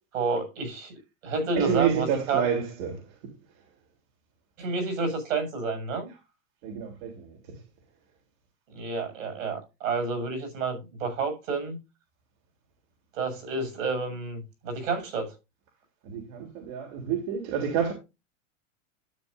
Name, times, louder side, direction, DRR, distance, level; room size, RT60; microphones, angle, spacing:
voice 1, 0.1-0.9 1.2-2.5 4.6-6.1 8.7-11.8 13.1-15.4, right 4 dB, 75° right, 7.2 m, -30 dB
voice 2, 1.6-3.0 6.6-7.6 16.1-17.9, right 7 dB, 55° right, 3.5 m, -29 dB
12.5 x 8.7 x 2.7 m
hypercardioid pair, 115°, 39 cm